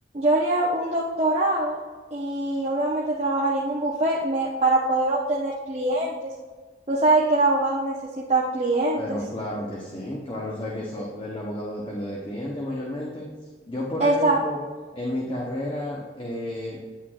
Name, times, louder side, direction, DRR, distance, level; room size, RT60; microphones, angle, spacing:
voice 1, 0.1-1.8 2.1-6.3 6.9-9.2 14.0-14.4, right 2 dB, 35° right, -4 dB, 0.8 m, -23 dB
voice 2, 9.0-13.3 13.7-14.6 14.9-16.8, left 1 dB, 25° left, -3 dB, 0.9 m, -31 dB
9.1 x 8.6 x 2.4 m, 1.4 s
head